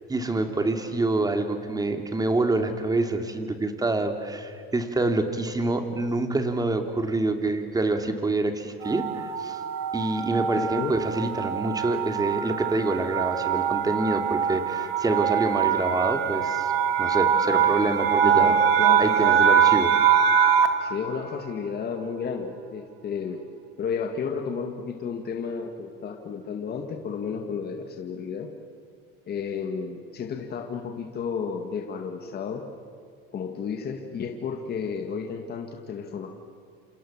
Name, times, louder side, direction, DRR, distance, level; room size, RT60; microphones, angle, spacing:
voice 1, 0.1-9.6 9.9-16.7 17.0-18.5 19.0-19.9, right 2 dB, 15° right, 6 dB, 2.8 m, -26 dB
sound 1, 8.8-20.9, right 8 dB, 85° right, 2.3 m, -23 dB
voice 2, 10.5-11.0 18.2-19.4 20.8-23.4 23.8-28.5 29.3-32.6 33.3-36.4, left 6 dB, 35° left, 3 dB, 2.0 m, -32 dB
28.0 x 27.5 x 7.4 m, 2.3 s
supercardioid pair, 125°, 29 cm